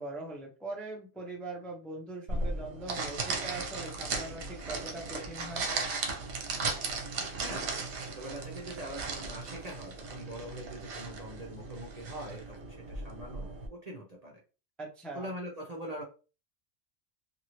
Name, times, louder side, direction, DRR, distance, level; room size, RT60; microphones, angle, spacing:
voice 1, 0.0-5.7 14.8-15.3, right 2 dB, ahead, -1 dB, 0.5 m, -41 dB
sound 1, 2.3-13.7, right 3 dB, 70° right, 0.9 m, -36 dB
voice 2, 8.0-14.4 15.1-16.0, right 1 dB, 45° right, -2 dB, 0.6 m, -43 dB
2.9 x 2.7 x 2.8 m, 0.34 s
omnidirectional pair, 1.2 m